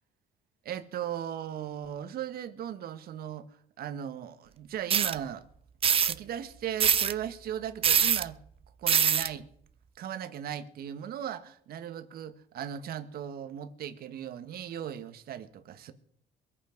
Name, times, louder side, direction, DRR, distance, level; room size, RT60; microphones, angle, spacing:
voice 1, 0.6-3.5 3.8-5.4 6.0-8.4 8.8-9.5 10.0-15.9, right 10 dB, 65° right, 1.6 m, -37 dB
sound 1, 4.9-5.1 5.8-6.1 6.8-7.1 7.8-8.2 8.9-9.3, right 7 dB, 35° right, 0.6 m, -23 dB
23.0 x 8.8 x 5.2 m
cardioid pair, 110°, 17 cm